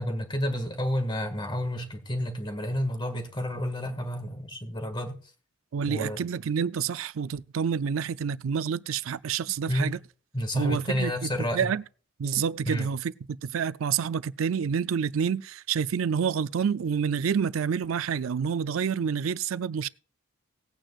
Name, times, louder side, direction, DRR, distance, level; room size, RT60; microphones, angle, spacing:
voice 1, 0.0-5.2 5.8-6.2 9.7-10.0 10.3-11.7 12.7-12.9, equal, 25° left, 1.8 m, -30 dB
voice 2, 5.7-10.0 10.5-11.8 12.2-13.1 13.4-19.9, right 7 dB, 85° right, 0.4 m, -28 dB
19.0 x 8.9 x 2.4 m
head